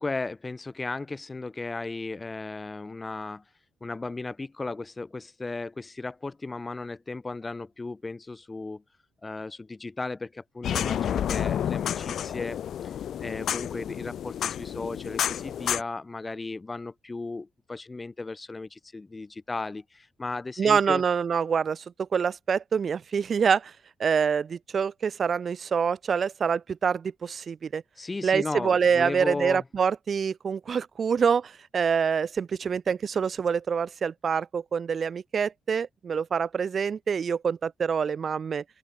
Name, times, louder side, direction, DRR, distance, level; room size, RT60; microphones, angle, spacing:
voice 1, 0.0-3.4 3.8-8.8 9.2-12.6 13.2-21.0 28.0-29.6, left 3 dB, 20° left, 7.6 m, -35 dB
sound 1, 10.6-15.8, left 9 dB, 65° left, 0.9 m, -30 dB
voice 2, 20.6-23.7 24.0-27.8 28.2-38.6, right 6 dB, 45° right, 1.0 m, -26 dB
open air
cardioid pair, 90°, 0 cm